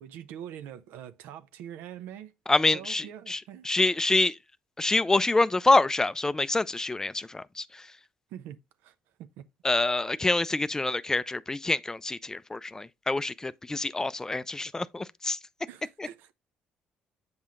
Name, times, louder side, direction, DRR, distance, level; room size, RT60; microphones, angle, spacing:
voice 1, 0.0-2.3 2.7-3.9 8.3-9.5 15.7-16.3, right 10 dB, 85° right, 0.6 m, -44 dB
voice 2, 2.5-4.3 4.8-7.8 9.6-15.4 16.0-16.1, left 2 dB, 15° left, 0.4 m, -26 dB
7.8 x 5.5 x 2.4 m
supercardioid pair, 70°, 3 cm